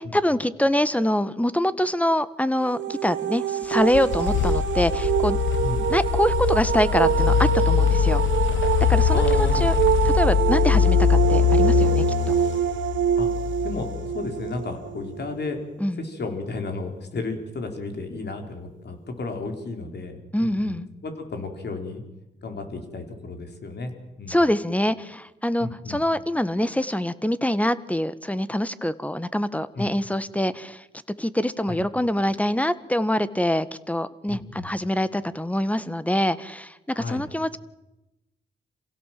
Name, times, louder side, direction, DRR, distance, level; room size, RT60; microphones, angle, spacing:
voice 1, 0.0-5.4 5.9-8.2 8.9-9.7 10.0-12.3 15.8-16.0 20.3-20.9 24.3-30.9 31.2-37.6, left 1 dB, 5° left, 14 dB, 1.5 m, -25 dB
sound 1, 2.6-15.4, right 9 dB, 75° right, 0.9 m, -25 dB
sound 2, 3.7-14.5, left 10 dB, 80° left, 0.7 m, -23 dB
voice 2, 9.1-10.2 13.2-13.3 13.6-15.6 16.0-22.0 22.4-23.9 24.2-24.4 25.6-26.0 29.8-29.9 31.7-31.8 34.3-34.7 36.9-37.2, left 3 dB, 60° left, 4 dB, 4.6 m, -33 dB
27.5 x 16.5 x 7.7 m, 0.96 s
cardioid pair, 60°, 19 cm